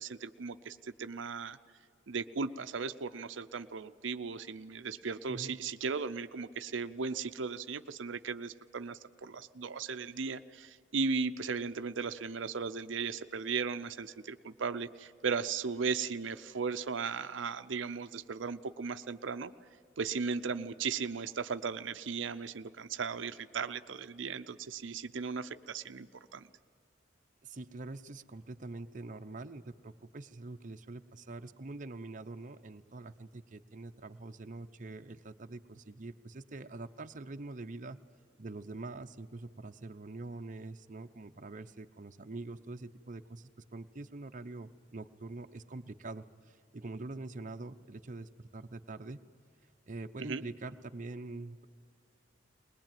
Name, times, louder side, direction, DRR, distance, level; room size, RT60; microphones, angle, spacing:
voice 1, 0.0-1.6 2.1-19.5 20.0-26.5 50.2-50.4, right 5 dB, 85° right, 9 dB, 0.6 m, -36 dB
voice 2, 27.4-38.0 38.4-49.2 49.9-51.6, right 2 dB, 45° right, 7 dB, 0.8 m, -45 dB
21.0 x 21.0 x 9.1 m, 2.3 s
head